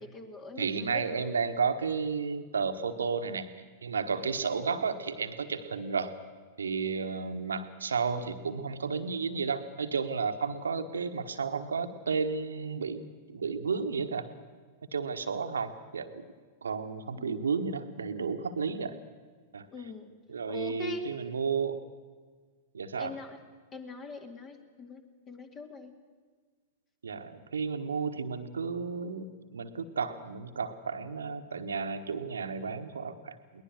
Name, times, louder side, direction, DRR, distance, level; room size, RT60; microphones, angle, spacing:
voice 1, 0.0-1.2 17.2-17.4 19.7-20.1 20.5-21.1 23.0-23.4 23.7-25.9, left 3 dB, 25° left, 7 dB, 2.2 m, -42 dB
voice 2, 0.6-3.5 3.8-6.1 6.6-13.0 13.3-14.3 14.9-16.2 16.6-19.0 19.5-19.9 20.3-21.8 22.7-23.2 27.0-33.6, right 5 dB, 70° right, 9 dB, 1.3 m, -32 dB
21.5 x 19.5 x 6.4 m, 1.5 s
figure-of-eight pair, 95°, 0 cm